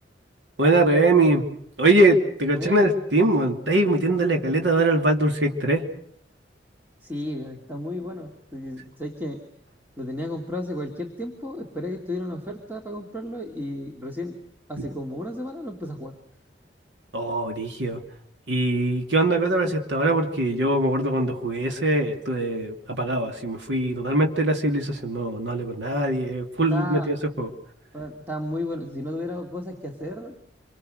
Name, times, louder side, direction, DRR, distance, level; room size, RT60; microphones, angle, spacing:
voice 1, 0.6-1.4 1.8-5.8 14.8-14.9 17.1-18.0 18.5-27.5, right 2 dB, 85° right, 3 dB, 2.8 m, -22 dB
voice 2, 2.5-2.9 7.0-9.4 10.0-14.4 14.7-16.2 26.7-27.1 27.9-30.4, left 1 dB, 10° right, 0 dB, 2.5 m, -33 dB
26.5 x 25.0 x 6.6 m, 0.65 s
head